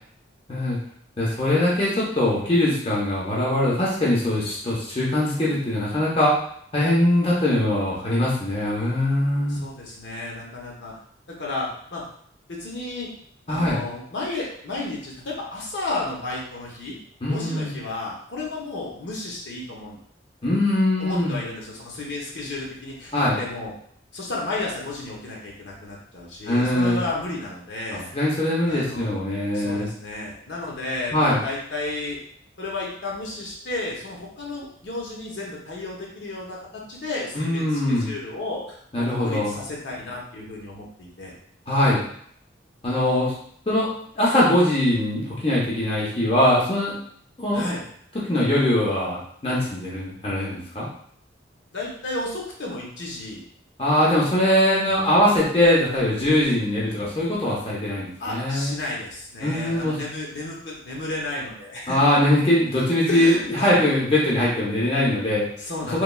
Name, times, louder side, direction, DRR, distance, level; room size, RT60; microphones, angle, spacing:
voice 1, 1.2-6.3 6.7-9.6 13.5-13.8 17.2-17.7 20.4-21.3 23.1-23.4 26.5-27.0 27.9-29.9 31.1-31.4 37.3-38.1 38.9-39.5 41.7-42.0 42.8-43.3 43.7-43.9 44.2-47.0 47.4-47.6 48.3-50.9 53.8-58.7 59.4-60.0 61.9-65.4 65.9-66.0, left 1 dB, 30° left, -6 dB, 0.6 m, -21 dB
voice 2, 9.5-10.9 11.4-12.0 12.5-13.1 13.5-17.0 17.3-20.0 21.0-23.7 24.1-28.0 28.7-29.1 29.5-32.2 32.6-41.3 47.5-47.8 51.7-53.4 58.2-62.0 63.0-63.8 65.6-66.0, left 2 dB, 65° left, -3 dB, 0.7 m, -32 dB
3.1 x 2.3 x 2.2 m, 0.63 s
head